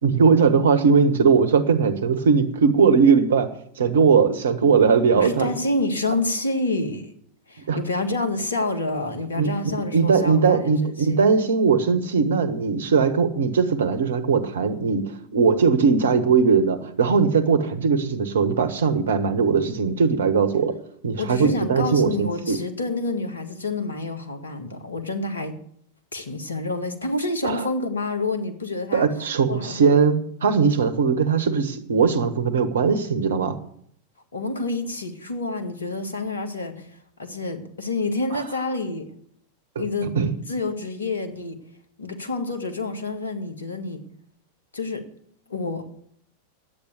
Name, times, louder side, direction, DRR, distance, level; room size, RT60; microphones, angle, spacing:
voice 1, 0.0-3.5 3.8-5.5 7.7-7.8 9.4-20.7 21.0-22.6 27.4-27.7 28.9-33.6 39.7-39.8 40.1-40.3, right 5 dB, 65° right, 10 dB, 1.3 m, -20 dB
voice 2, 5.2-7.1 7.5-11.2 21.2-25.6 26.1-29.1 29.5-29.9 34.3-36.9 37.2-39.1 39.8-40.2 40.5-41.6 42.0-44.0 44.7-45.0 45.5-45.8, left 2 dB, 75° left, 6 dB, 1.9 m, -28 dB
10.5 x 8.7 x 8.4 m, 0.65 s
figure-of-eight pair, 90°, 0 cm